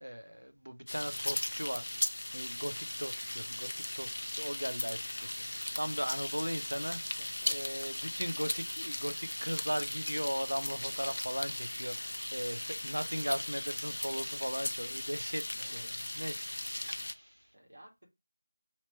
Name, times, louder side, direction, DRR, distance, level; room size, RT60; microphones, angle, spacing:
voice 1, 0.0-1.9 2.3-7.0 7.5-15.9 16.1-16.4 16.9-17.4, equal, 90° right, 0.6 m, -38 dB
sound 1, 0.9-17.1, left 1 dB, 65° left, 0.4 m, -38 dB
Water tap faucet / Sink (filling or washing) / Splash splatter, 2.7-11.3, right 1 dB, 45° right, 1.3 m, -59 dB
voice 2, 6.9-8.1 15.6-15.9 17.5-18.1, right 1 dB, 65° right, 1.5 m, -57 dB
2.9 x 2.9 x 4.5 m
figure-of-eight pair, 170°, 0 cm